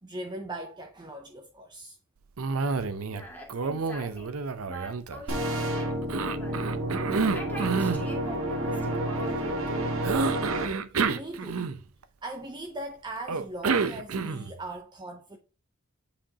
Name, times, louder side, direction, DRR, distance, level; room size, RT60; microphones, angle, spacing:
voice 1, 0.0-2.0 11.1-11.6 12.2-15.4, right 1 dB, 20° right, 0.7 m, -39 dB
Cough, 2.4-3.2 3.5-5.6 6.1-8.1 10.0-12.0 13.3-14.6, right 4 dB, 90° right, 0.7 m, -29 dB
voice 2, 2.8-4.4 4.7-6.9 7.3-10.0, equal, 10° left, 2.1 m, -44 dB
sound 1, 5.3-10.7, right 1 dB, 70° right, 1.4 m, -30 dB
8.6 x 5.0 x 2.8 m
head